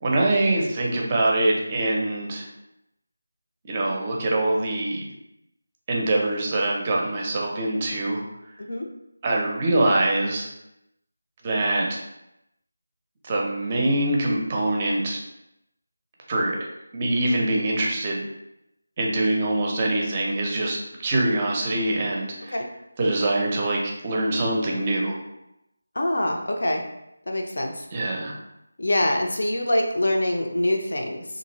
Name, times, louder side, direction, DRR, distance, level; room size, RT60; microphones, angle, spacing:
voice 1, 0.0-2.5 3.7-5.0 5.9-8.2 9.2-10.5 11.4-12.0 13.2-15.2 16.3-16.7 16.9-18.2 19.0-22.5 23.0-25.2 27.9-28.3, right 1 dB, 25° right, -1 dB, 0.5 m, -24 dB
voice 2, 25.9-26.8 27.3-27.9 28.8-31.2, left 1 dB, 65° left, 2 dB, 0.6 m, -24 dB
3.1 x 2.6 x 2.9 m, 0.86 s
figure-of-eight pair, 165°, 0 cm